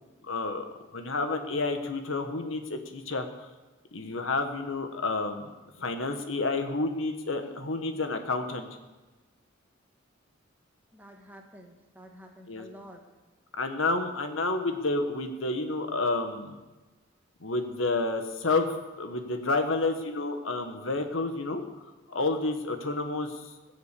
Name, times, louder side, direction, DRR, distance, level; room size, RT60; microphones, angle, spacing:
voice 1, 0.2-0.6 0.9-3.3 3.9-5.5 5.8-8.7 12.5-12.6 13.6-16.5 17.4-21.6 22.1-23.4, left 3 dB, 80° left, 6 dB, 1.4 m, -30 dB
voice 2, 10.9-13.0, equal, 10° right, 1 dB, 2.0 m, -49 dB
19.0 x 6.7 x 8.3 m, 1.2 s
head